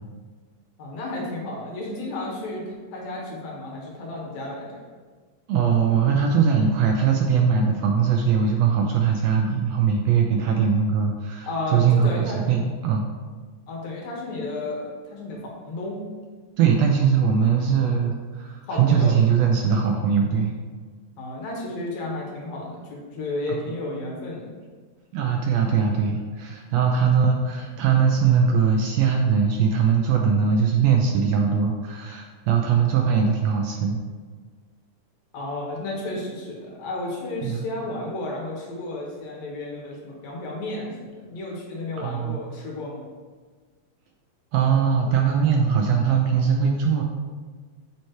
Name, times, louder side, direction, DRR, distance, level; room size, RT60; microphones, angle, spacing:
voice 1, 0.8-4.8 11.4-12.4 13.7-16.0 18.6-19.2 21.2-24.5 35.3-43.0, left 2 dB, 75° left, -3 dB, 2.4 m, -32 dB
voice 2, 5.5-13.0 16.6-20.5 25.1-34.0 37.4-37.6 42.0-42.4 44.5-47.0, right 6 dB, 80° right, 2 dB, 1.6 m, -21 dB
7.1 x 3.1 x 4.5 m, 1.5 s
omnidirectional pair, 3.3 m